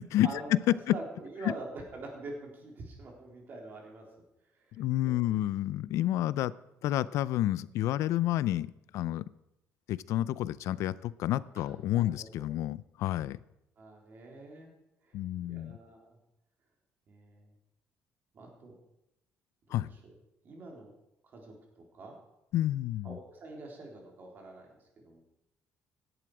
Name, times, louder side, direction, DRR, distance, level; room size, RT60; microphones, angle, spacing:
voice 1, 0.1-1.0 4.8-6.5 6.8-9.3 9.9-13.4 15.1-15.8 19.7-19.9 22.5-23.2, left 13 dB, 70° left, 19 dB, 0.5 m, -29 dB
voice 2, 0.9-4.0 4.5-5.2 11.6-11.7 11.9-12.5 13.2-13.3 13.8-14.7 15.0-16.2 17.1-17.5 18.3-18.7 19.7-20.1 20.4-20.9 21.2-22.2 23.0-25.2, right 2 dB, 40° right, 0 dB, 3.6 m, -45 dB
16.5 x 11.0 x 4.9 m, 0.86 s
cardioid pair, 160°, 5 cm